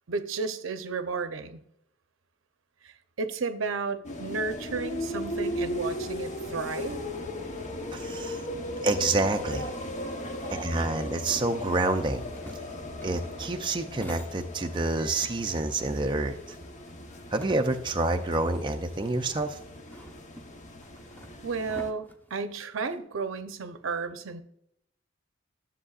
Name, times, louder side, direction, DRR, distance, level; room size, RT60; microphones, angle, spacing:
voice 1, 0.1-1.6 2.8-7.0 21.4-24.4, right 4 dB, 70° right, 9 dB, 0.7 m, -33 dB
sound 1, 4.0-21.9, left 1 dB, 40° left, 0.9 m, -37 dB
voice 2, 7.9-8.4 8.8-9.7 10.5-12.3 13.0-16.4 17.3-19.6, right 2 dB, 25° right, 4 dB, 0.5 m, -28 dB
sound 2, 12.1-14.9 15.2-18.1 18.4-18.5 19.4-23.0, equal, 10° left, 1.0 m, -48 dB
12.5 x 7.5 x 2.4 m, 0.76 s
head